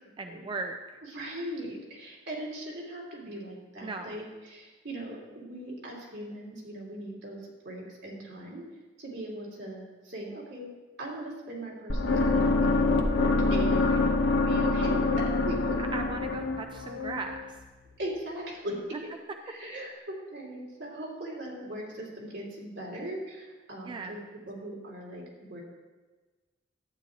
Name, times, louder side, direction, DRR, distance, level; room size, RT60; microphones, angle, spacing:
voice 1, 0.2-0.8 3.8-4.2 13.9-14.0 15.9-17.4 23.9-24.2, right 3 dB, 25° right, 5 dB, 0.4 m, -37 dB
voice 2, 1.0-8.6 9.0-10.7 11.0-13.9 14.5-15.8 18.0-19.1 19.4-25.2 25.5-25.6, right 1 dB, 75° right, -3 dB, 2.9 m, -39 dB
sound 1, 11.9-18.0, left 3 dB, 90° left, 0.9 m, -26 dB
12.0 x 9.0 x 3.2 m, 1.3 s
head